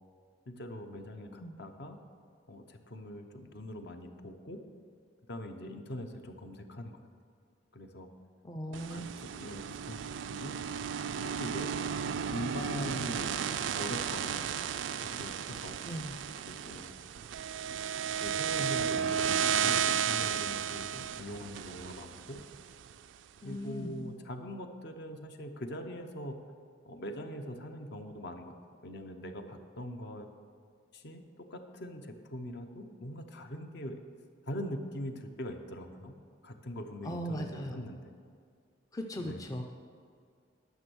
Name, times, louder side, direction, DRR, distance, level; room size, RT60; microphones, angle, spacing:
voice 1, 0.5-2.0 2.5-4.6 5.3-7.0 7.7-8.1 8.7-9.0 9.3-10.6 11.4-13.3 13.6-14.4 15.2-15.8 16.5-16.9 17.6-17.7 18.2-22.4 23.4-26.4 26.9-28.5 28.8-30.3 30.9-34.0 34.5-36.1 36.4-38.1 39.2-39.5, left 1 dB, 55° left, 6 dB, 0.8 m, -42 dB
voice 2, 8.4-9.1 15.8-16.2 23.4-24.0 37.0-37.8 38.9-39.6, equal, 20° left, 3 dB, 0.5 m, -38 dB
sound 1, 8.7-22.9, right 8 dB, 65° right, 0.4 m, -34 dB
11.0 x 6.2 x 6.2 m, 2.2 s
head